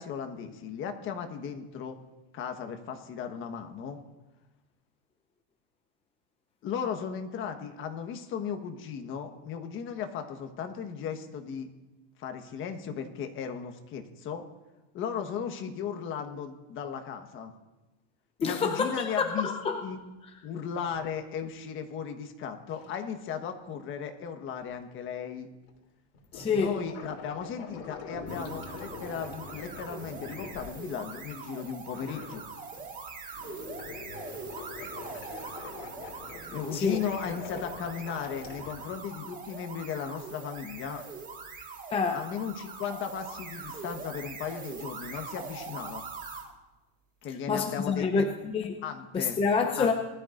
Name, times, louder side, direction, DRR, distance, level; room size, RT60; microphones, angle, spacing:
voice 1, 0.0-2.0 2.3-4.0 6.6-11.7 12.2-14.4 14.9-17.5 18.4-19.5 19.8-20.0 20.4-25.5 26.5-32.4 36.5-41.0 42.1-46.0 47.2-48.3 48.8-49.4 49.8-49.9, left 7 dB, 40° left, 6 dB, 1.4 m, -36 dB
voice 2, 18.4-19.8 26.3-26.8 36.7-37.0 41.9-42.2 47.5-48.8 49.1-49.9, left 5 dB, 15° left, 5 dB, 0.7 m, -27 dB
sound 1, 19.9-20.0 20.5-21.5 22.7-23.1 24.6-24.7 25.4-25.7 26.1-31.2 31.9-33.0 33.3-38.7, left 4 dB, 75° left, 3.3 m, -44 dB
sound 2, 28.3-46.5, right 5 dB, 25° right, 1.9 m, -43 dB
20.5 x 12.5 x 2.6 m, 1.1 s
supercardioid pair, 140°, 33 cm